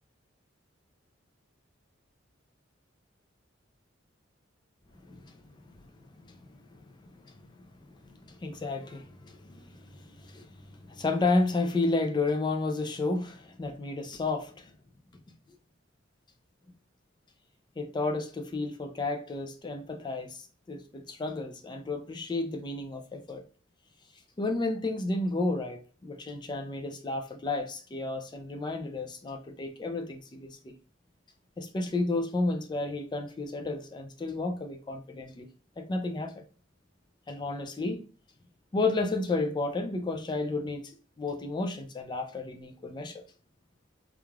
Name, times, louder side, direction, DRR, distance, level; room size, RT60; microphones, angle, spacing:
voice 1, 5.0-5.3 5.8-7.3 7.8-14.7 17.8-23.4 24.4-30.7 31.6-35.5 35.8-36.4 37.3-38.0 38.7-40.9 41.2-43.2, left 2 dB, 25° left, 0.3 m, -32 dB
3.1 x 2.4 x 2.2 m
head